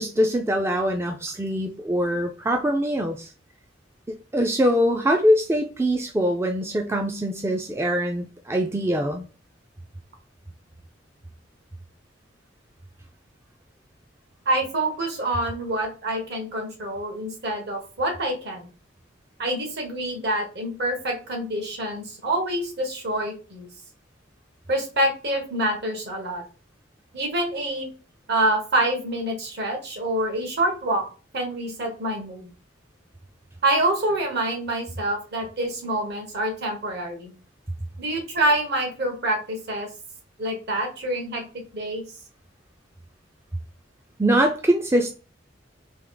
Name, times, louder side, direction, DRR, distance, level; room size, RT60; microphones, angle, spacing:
voice 1, 0.0-3.3 4.3-9.3 44.2-45.1, equal, 15° right, 4 dB, 0.4 m, -23 dB
voice 2, 14.4-18.7 19.4-23.7 24.7-26.4 27.1-27.9 28.3-31.0 31.3-32.5 33.6-37.3 38.0-39.9 40.4-41.4 41.7-42.0, right 1 dB, 60° right, 2 dB, 1.5 m, -26 dB
3.5 x 3.2 x 3.8 m, 0.36 s
head